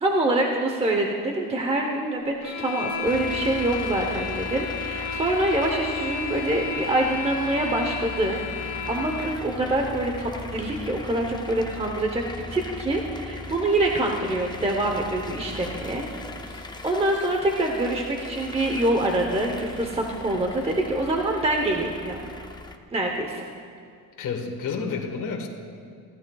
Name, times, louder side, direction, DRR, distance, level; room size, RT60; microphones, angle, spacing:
voice 1, 0.0-12.2 12.5-16.1 16.5-22.3 22.9-23.4, right 1 dB, 15° right, 2 dB, 0.9 m, -25 dB
sound 1, 2.4-9.5, left 6 dB, 85° left, 1.7 m, -33 dB
sound 2, 3.0-22.8, left 3 dB, 10° left, 0.5 m, -39 dB
voice 2, 24.2-25.5, left 5 dB, 60° left, 1 dB, 1.5 m, -30 dB
25.0 x 14.5 x 2.3 m, 2.2 s
cardioid pair, 160°, 36 cm